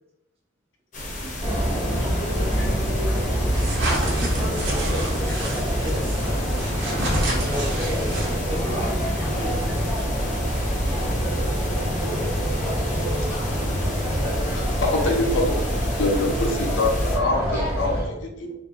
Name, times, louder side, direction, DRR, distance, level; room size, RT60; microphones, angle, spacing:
sound 1, 0.9-17.2, left 1 dB, 40° left, 0.7 m, -34 dB
voice 1, 1.2-1.5 4.2-6.6 7.3-9.7 11.9-12.3, equal, 30° right, -4 dB, 0.7 m, -34 dB
sound 2, 1.4-18.0, equal, 15° right, 1.0 m, -25 dB
voice 2, 2.4-2.7 4.7-5.4 8.6-10.3, right 1 dB, 10° left, -4 dB, 0.4 m, -41 dB
sound 3, 3.5-8.6, right 1 dB, 80° right, 0.8 m, -30 dB
voice 3, 14.5-15.6 16.0-18.6, left 2 dB, 80° left, 1 dB, 0.6 m, -25 dB
2.5 x 2.0 x 3.6 m, 0.91 s
head